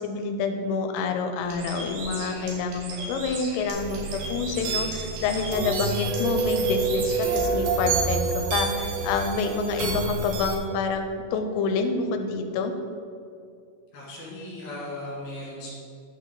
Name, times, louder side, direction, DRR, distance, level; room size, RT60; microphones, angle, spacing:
voice 1, 0.0-12.7, left 4 dB, 85° left, 5 dB, 3.2 m, -27 dB
Bird, 1.4-7.5, right 2 dB, 65° right, 2.9 m, -38 dB
sound 1, 3.7-10.6, right 4 dB, 80° right, 3.6 m, -28 dB
voice 2, 13.9-15.7, left 1 dB, 60° left, -7 dB, 3.6 m, -37 dB
11.0 x 5.4 x 3.9 m, 2.3 s
omnidirectional pair, 5.8 m